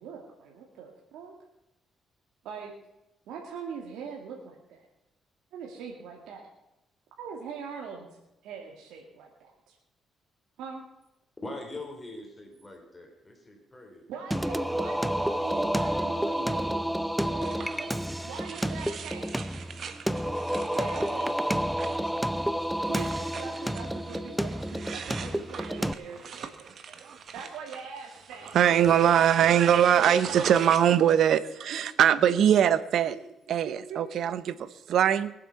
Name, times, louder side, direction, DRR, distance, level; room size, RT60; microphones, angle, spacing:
voice 1, 0.0-1.3 2.4-2.7 3.3-4.9 5.5-6.5 7.2-8.1 8.4-9.8 10.6-10.8 14.1-16.9 17.2-17.6 18.2-19.5 20.8-21.5 22.9-26.7 27.3-29.1 30.0-30.7 33.9-34.0, right 6 dB, 90° right, 0 dB, 2.0 m, -42 dB
voice 2, 11.4-14.0, left 2 dB, 20° left, 3 dB, 3.4 m, -42 dB
Singing, 14.3-25.9, equal, 5° right, 0.6 m, -30 dB
sound 1, 17.4-31.1, right 6 dB, 55° right, 1.3 m, -43 dB
voice 3, 28.5-33.1 33.5-35.3, right 9 dB, 70° right, 15 dB, 0.8 m, -22 dB
21.0 x 7.9 x 5.8 m, 0.92 s
cardioid pair, 90°, 0 cm